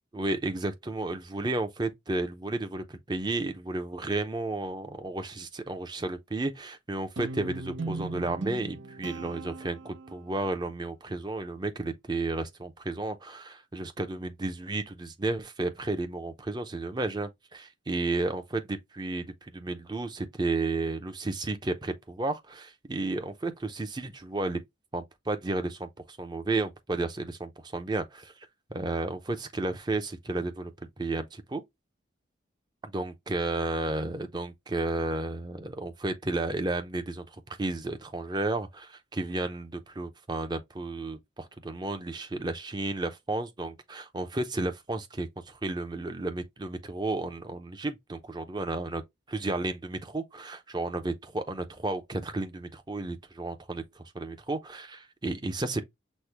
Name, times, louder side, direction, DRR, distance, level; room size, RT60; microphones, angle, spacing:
voice 1, 0.1-24.6 24.9-31.6 32.9-49.0 49.3-55.8, right 2 dB, 20° right, 0.6 m, -33 dB
Guitar, 7.2-10.4, right 3 dB, 80° right, 0.8 m, -38 dB
6.2 x 2.1 x 3.3 m
head